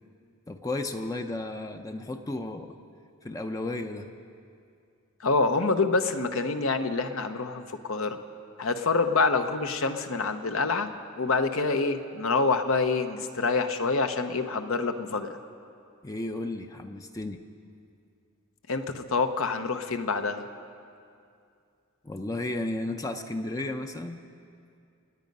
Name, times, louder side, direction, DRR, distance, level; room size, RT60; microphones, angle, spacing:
voice 1, 0.5-2.8 3.2-4.1 16.0-17.4 22.0-24.2, left 2 dB, 15° left, 5 dB, 0.5 m, -33 dB
voice 2, 5.2-8.2 8.6-10.9 11.2-15.4 18.7-20.5, left 4 dB, 70° left, 7 dB, 0.9 m, -26 dB
27.5 x 9.4 x 5.4 m, 2.4 s
head